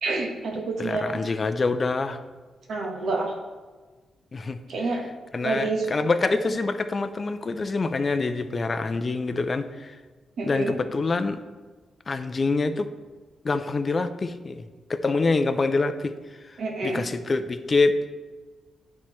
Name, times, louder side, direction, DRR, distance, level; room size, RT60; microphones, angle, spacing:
voice 1, 0.0-1.2 2.7-3.3 4.7-5.0 5.4-5.9 10.4-10.7 16.6-17.0, right 3 dB, 75° right, 0 dB, 1.3 m, -28 dB
voice 2, 0.8-2.2 4.3-4.6 5.3-10.0 10.4-11.4 12.1-12.9 13.4-14.6 14.9-16.1 16.5-16.6 16.8-18.0, left 3 dB, 35° left, 9 dB, 0.4 m, -25 dB
9.8 x 4.2 x 3.1 m, 1.3 s
cardioid pair, 105°, 0 cm